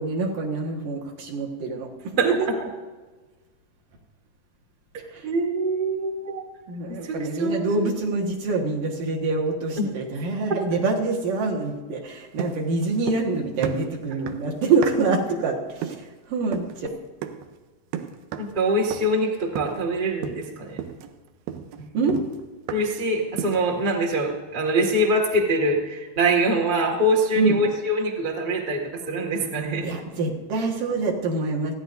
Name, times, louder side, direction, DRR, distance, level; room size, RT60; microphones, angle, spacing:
voice 1, 0.0-2.5 5.1-5.3 6.7-15.6 15.8-16.9 21.9-22.2 27.4-27.6 29.8-31.7, right 3 dB, 65° right, -1 dB, 3.0 m, -25 dB
voice 2, 5.2-6.4 6.9-7.9 9.8-9.9 10.5-10.6 18.4-20.8 22.7-29.9, right 1 dB, 30° right, -1 dB, 0.8 m, -24 dB
sound 1, 12.4-13.4 13.6-15.2 15.8-16.1 16.5-16.8 17.2-17.5 17.9-18.6 18.9-19.2 19.6-19.9 20.2-20.5 20.8-23.0 23.4-23.7, right 8 dB, 85° right, 2.6 m, -34 dB
30.0 x 10.0 x 2.6 m, 1.3 s
omnidirectional pair, 4.3 m